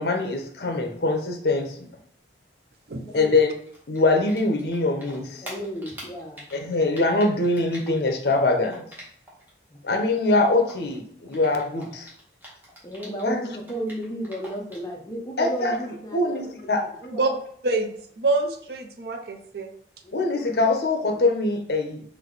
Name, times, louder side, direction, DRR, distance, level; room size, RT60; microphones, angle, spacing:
voice 1, 0.0-1.8 3.1-3.5 3.9-5.4 6.5-8.8 9.8-12.1 13.2-13.4 15.4-15.7 16.1-16.8 20.1-22.0, left 2 dB, 60° left, 4 dB, 0.7 m, -23 dB
Typing, 3.3-4.8 5.0-9.5 9.7-13.3 13.6-14.9, equal, 10° right, 1.1 m, -44 dB
voice 2, 5.4-6.5 9.7-9.8 12.8-17.4 20.0-20.4, right 1 dB, 20° left, -1 dB, 0.6 m, -34 dB
voice 3, 18.2-19.7, right 3 dB, 60° right, 6 dB, 0.5 m, -25 dB
3.3 x 3.1 x 3.9 m, 0.65 s
head